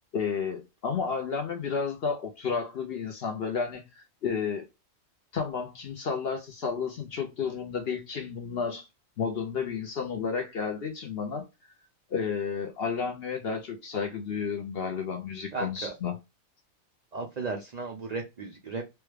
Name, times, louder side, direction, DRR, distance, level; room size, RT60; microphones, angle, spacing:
voice 1, 0.1-3.9 4.2-4.7 5.3-8.9 9.2-11.4 12.1-16.2, left 6 dB, 55° left, 0.8 m, -31 dB
voice 2, 15.5-15.9 17.1-18.8, right 4 dB, 60° right, 0.4 m, -35 dB
3.2 x 2.3 x 3.2 m
omnidirectional pair, 1.4 m